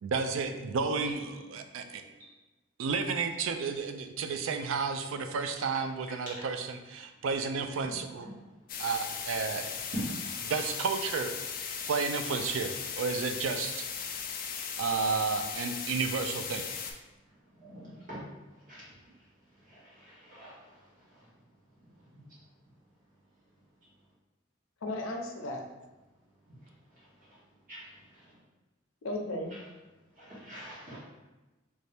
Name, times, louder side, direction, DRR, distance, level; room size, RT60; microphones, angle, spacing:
voice 1, 0.0-2.0 2.8-8.3 8.8-9.7 10.4-11.4 11.8-13.8 14.8-16.7, right 5 dB, 80° right, 7 dB, 0.3 m, -32 dB
sound 1, 8.7-16.9, left 6 dB, 45° left, 0.3 m, -37 dB
voice 2, 17.6-18.2 18.7-18.8 19.7-20.5 27.7-27.8 30.2-31.0, equal, 40° right, -8 dB, 1.4 m, -47 dB
voice 3, 24.8-25.6 29.0-29.5, left 1 dB, 90° left, 2 dB, 0.6 m, -35 dB
3.2 x 2.7 x 3.3 m, 1.1 s
head